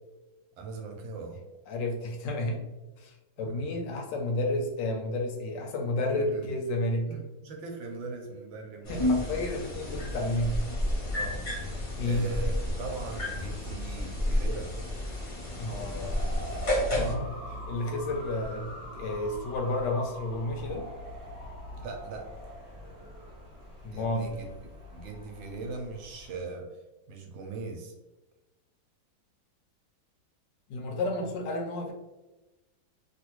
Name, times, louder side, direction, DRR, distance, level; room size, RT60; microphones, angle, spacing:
voice 1, 0.6-1.4 3.4-3.7 6.1-6.5 7.1-9.4 10.2-10.3 11.1-11.6 12.0-14.7 21.7-22.5 23.9-24.5 24.9-26.8 27.1-27.9, right 3 dB, 80° right, 2 dB, 1.3 m, -40 dB
voice 2, 1.7-2.7 3.0-7.1 8.9-10.6 12.0-12.3 15.6-16.2 16.9-17.3 17.7-20.9 23.8-24.4 30.7-31.9, left 1 dB, 75° left, 2 dB, 1.1 m, -31 dB
sound 1, 8.8-17.1, left 1 dB, 40° left, 0.7 m, -31 dB
sound 2, 15.6-26.4, equal, 45° right, 0.5 m, -43 dB
3.2 x 2.4 x 2.9 m, 1.1 s
omnidirectional pair, 2.2 m